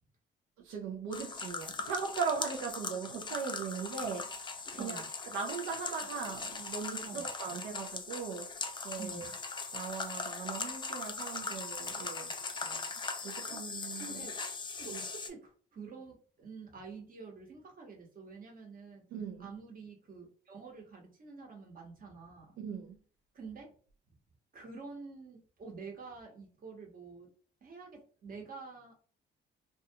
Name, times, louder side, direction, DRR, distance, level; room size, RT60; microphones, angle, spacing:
voice 1, 0.6-4.3 4.7-8.6 8.8-9.3 9.7-12.3 12.6-14.3 14.9-15.0 19.1-19.5 22.6-23.0, right 5 dB, 85° right, 0.5 m, -39 dB
sound 1, 1.1-15.3, left 4 dB, 25° left, 0.4 m, -40 dB
voice 2, 4.8-5.1 7.0-7.3 9.0-9.4 13.5-13.6 14.0-14.4 14.8-19.0 19.4-22.6 23.3-23.7 24.1-24.2 24.5-27.3 27.6-29.0, right 4 dB, 45° right, 1.0 m, -48 dB
2.3 x 2.2 x 2.7 m
cardioid pair, 90°, 20 cm